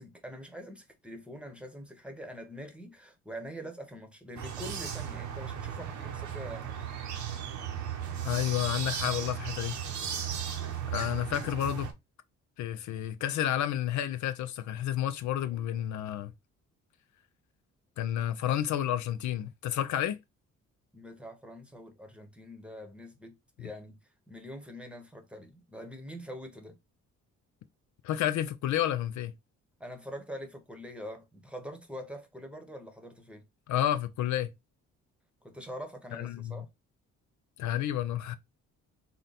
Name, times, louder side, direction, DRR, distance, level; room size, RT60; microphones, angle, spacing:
voice 1, 0.0-6.8 11.2-11.5 20.9-24.0 24.3-26.8 29.8-33.4 35.4-36.7, equal, 5° right, 1.0 m, -44 dB
sound 1, 4.4-11.9, right 8 dB, 70° right, 0.9 m, -36 dB
voice 2, 8.2-9.7 10.9-11.9 12.6-16.3 18.0-20.2 28.0-29.3 33.7-34.5 36.1-36.6 37.6-38.4, left 11 dB, 70° left, 0.5 m, -30 dB
3.8 x 2.2 x 4.0 m
cardioid pair, 90°, 30 cm